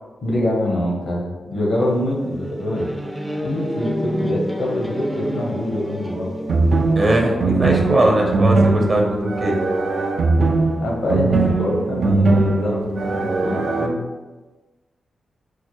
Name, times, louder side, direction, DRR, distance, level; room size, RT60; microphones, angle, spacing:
voice 1, 0.2-2.9 3.4-6.4 10.8-14.1, left 1 dB, 80° left, -3 dB, 1.0 m, -24 dB
sound 1, 1.8-6.9, equal, ahead, 0.4 m, -29 dB
sound 2, 6.5-13.9, right 3 dB, 65° right, 0.4 m, -20 dB
voice 2, 6.9-9.5, right 1 dB, 45° right, 1 dB, 0.8 m, -19 dB
4.5 x 2.1 x 3.1 m, 1.2 s
cardioid pair, 50°, 0 cm